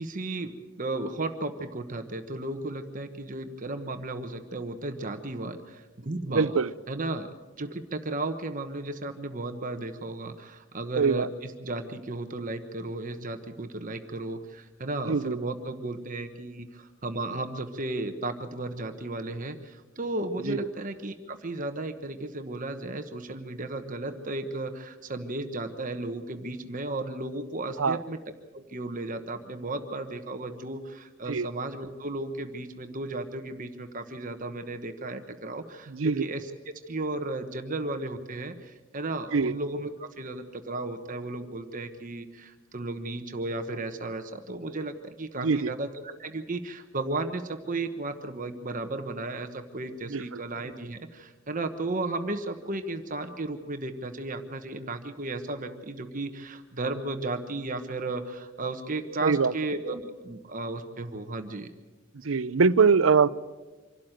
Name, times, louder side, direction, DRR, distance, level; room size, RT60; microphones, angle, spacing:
voice 1, 0.0-6.5 6.9-28.2 28.5-36.5 36.9-61.7, right 2 dB, 40° right, 7 dB, 1.2 m, -34 dB
voice 2, 6.3-6.7 11.0-11.3 15.1-15.5 20.5-20.6 27.8-28.0 31.3-31.5 35.9-36.2 39.3-39.6 45.4-45.7 50.1-50.4 59.2-59.5 62.2-63.3, right 5 dB, 90° right, 17 dB, 0.6 m, -23 dB
25.5 x 12.5 x 9.0 m, 1.3 s
head